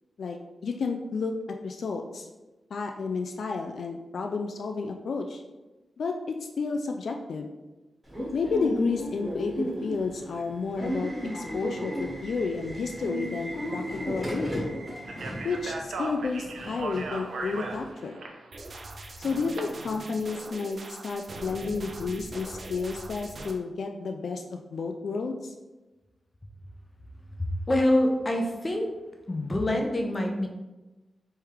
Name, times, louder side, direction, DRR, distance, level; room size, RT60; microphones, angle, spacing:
voice 1, 0.6-1.4 1.6-2.3 2.7-5.4 6.0-7.5 8.3-14.7 15.4-18.2 19.2-25.5, left 4 dB, 70° left, 3 dB, 0.3 m, -31 dB
Subway metro underground / Alarm, 8.1-17.9, equal, 15° right, 1.1 m, -35 dB
Speech, 15.0-19.6, right 3 dB, 85° right, 0.6 m, -37 dB
sound 1, 18.5-23.5, right 2 dB, 40° right, 0.5 m, -42 dB
voice 2, 27.4-28.9 29.3-30.5, left 1 dB, 25° left, 2 dB, 0.6 m, -25 dB
3.5 x 3.3 x 4.6 m, 1.1 s
wide cardioid pair, 160°, 0 cm